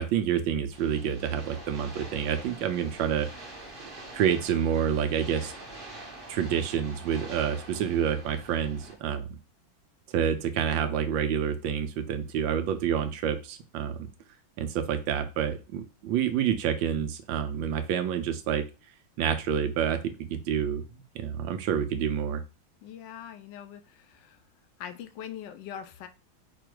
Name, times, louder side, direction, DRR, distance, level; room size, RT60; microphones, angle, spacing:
voice 1, 0.0-3.3 4.1-5.5 6.3-9.4 10.1-14.0 14.6-18.6 19.2-20.8 21.1-22.4, right 8 dB, 80° right, 9 dB, 1.3 m, -28 dB
sound 1, 0.7-8.9, right 2 dB, 30° right, 1.2 m, -45 dB
voice 2, 22.8-24.4 24.8-26.1, left 9 dB, 75° left, 9 dB, 1.2 m, -42 dB
5.0 x 2.3 x 4.6 m, 0.32 s
omnidirectional pair, 2.1 m